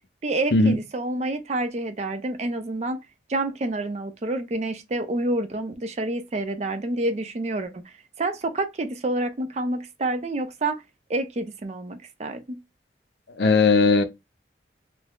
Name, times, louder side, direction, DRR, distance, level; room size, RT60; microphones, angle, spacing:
voice 1, 0.2-3.0 3.3-10.8 11.1-12.6, right 2 dB, 40° right, 0.4 m, -28 dB
voice 2, 13.4-14.0, left 3 dB, 70° left, 0.5 m, -17 dB
2.6 x 2.3 x 3.4 m
head